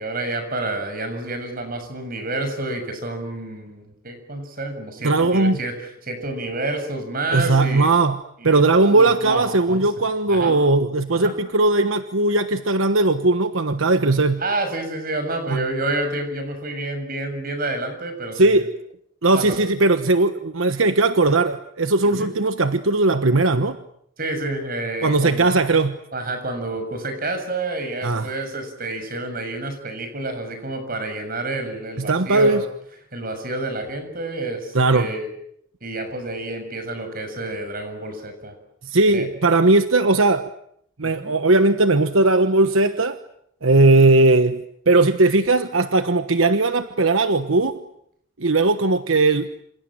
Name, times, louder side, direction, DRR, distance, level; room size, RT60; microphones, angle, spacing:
voice 1, 0.0-7.9 8.4-9.9 10.3-10.5 11.2-11.3 14.4-18.7 19.3-19.6 22.0-22.3 24.2-25.5 26.1-32.6 33.1-35.3 35.8-38.5 39.1-39.3 41.0-41.3 43.7-43.8, right 2 dB, 45° right, 7 dB, 7.0 m, -29 dB
voice 2, 5.0-5.6 7.3-8.2 8.4-14.4 15.5-15.6 18.3-18.7 19.2-23.8 25.0-26.0 28.0-28.3 32.0-32.6 34.7-35.1 38.8-40.5 41.0-43.2 43.6-47.8 48.4-49.5, right 2 dB, 75° right, 9 dB, 1.2 m, -18 dB
28.0 x 27.5 x 7.6 m, 0.72 s
head